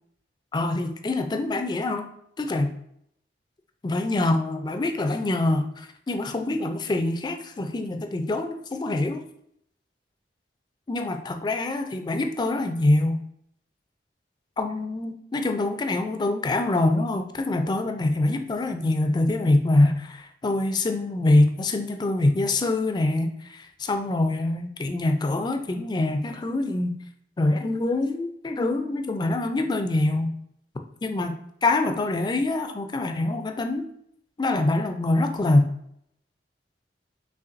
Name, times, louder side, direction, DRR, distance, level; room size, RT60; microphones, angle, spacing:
voice 1, 0.5-2.1 2.4-2.7 3.8-9.3 10.9-13.2 14.6-27.0 27.4-30.4 31.0-31.4 31.6-33.9 34.4-35.7, left 2 dB, 25° left, 6 dB, 0.3 m, -24 dB
5.7 x 3.0 x 2.6 m, 0.72 s
head